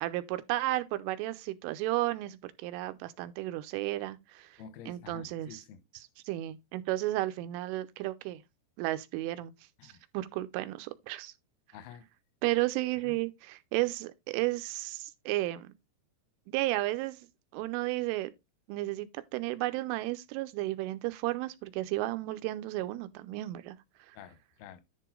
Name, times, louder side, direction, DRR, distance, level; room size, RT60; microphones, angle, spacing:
voice 1, 0.0-4.5 4.9-5.6 6.3-8.4 8.8-9.5 9.8-11.3 12.4-15.7 16.5-17.2 17.5-18.3 18.7-23.8, right 17 dB, 85° right, 3.2 m, -33 dB
voice 2, 4.6-5.8 9.8-10.0 11.7-12.1 13.1-13.2 24.1-24.8, left 7 dB, 75° left, 2.2 m, -49 dB
10.5 x 4.7 x 3.8 m
omnidirectional pair, 5.7 m